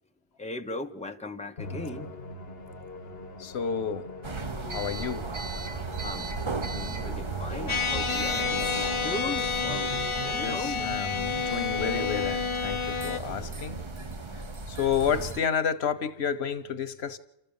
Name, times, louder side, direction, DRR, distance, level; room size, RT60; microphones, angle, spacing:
voice 1, 0.4-2.1 4.6-5.0 6.0-11.2, left 2 dB, 5° left, 1.1 m, -39 dB
Musical instrument, 1.6-10.1, left 1 dB, 70° left, 1.6 m, -42 dB
voice 2, 3.4-4.1 4.6-5.3 10.3-13.8 14.7-17.2, left 7 dB, 90° left, 1.2 m, -30 dB
sound 1, 4.2-15.4, right 3 dB, 30° right, 0.8 m, -36 dB
sound 2, 7.7-13.2, left 5 dB, 35° left, 0.8 m, -29 dB
28.0 x 13.5 x 7.1 m
omnidirectional pair, 1.0 m